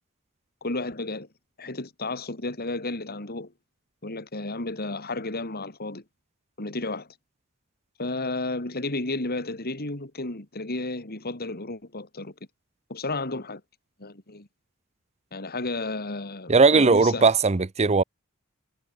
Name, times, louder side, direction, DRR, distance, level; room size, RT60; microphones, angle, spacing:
voice 1, 0.6-1.3 1.6-3.5 4.0-6.0 6.6-7.1 8.0-12.3 12.9-13.6 14.0-14.5 15.3-17.3, left 2 dB, 45° left, 3.3 m, -32 dB
voice 2, 16.5-18.0, right 4 dB, 30° right, 0.7 m, -18 dB
head